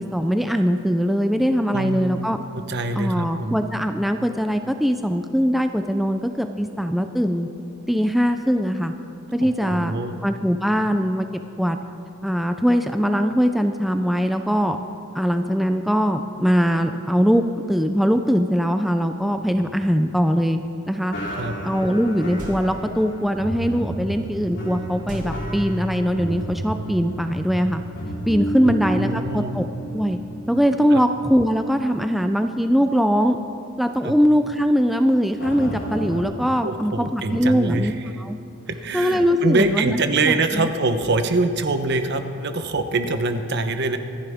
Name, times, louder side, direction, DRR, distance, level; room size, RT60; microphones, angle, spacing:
voice 1, 0.0-2.4 3.0-7.5 7.9-8.9 9.3-10.0 10.2-11.3 11.6-11.9 12.2-14.8 15.1-20.6 20.9-21.2 21.6-27.8 28.3-29.6 29.9-30.2 30.5-33.4 33.8-37.9 38.2-38.4 38.9-40.7, equal, ahead, 6 dB, 0.4 m, -21 dB
voice 2, 1.7-3.6 9.4-10.2 21.4-21.5 28.7-29.5 30.9-31.0 34.0-34.1 36.6-38.1 38.7-44.0, right 3 dB, 55° right, 8 dB, 0.9 m, -24 dB
sound 1, 19.4-20.7 21.1-31.5 31.8-32.0 32.6-32.7 35.4-36.2, equal, 65° left, 3.1 m, -32 dB
sound 2, 22.4-23.0 25.1-26.1, equal, 40° right, 2.5 m, -36 dB
25.0 x 10.5 x 3.6 m, 2.7 s
head